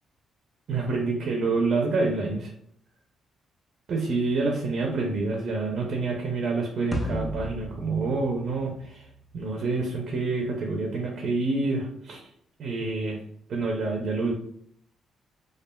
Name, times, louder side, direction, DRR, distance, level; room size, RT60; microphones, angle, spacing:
voice 1, 0.7-2.5 3.9-9.0 9.3-12.2 12.6-13.2 13.5-14.3, right 3 dB, 60° right, 1 dB, 0.5 m, -27 dB
sound 1, 6.9-9.4, equal, 10° left, 0.5 m, -34 dB
3.2 x 2.3 x 2.2 m, 0.70 s
cardioid pair, 90°, 0 cm